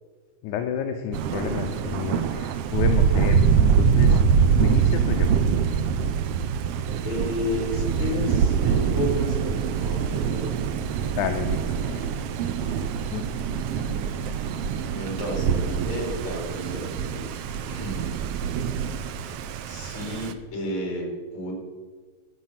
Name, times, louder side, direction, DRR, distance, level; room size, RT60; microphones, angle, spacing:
voice 1, 0.4-4.2 4.6-5.3 11.1-12.1 13.1-14.5, left 8 dB, 85° left, 5 dB, 2.2 m, -31 dB
Thunder, 1.1-20.3, right 7 dB, 85° right, 1.3 m, -24 dB
voice 2, 7.0-10.8 14.9-18.1 19.7-21.5, left 1 dB, 70° left, -1 dB, 4.4 m, -32 dB
14.0 x 5.5 x 7.4 m, 1.5 s
omnidirectional pair, 3.4 m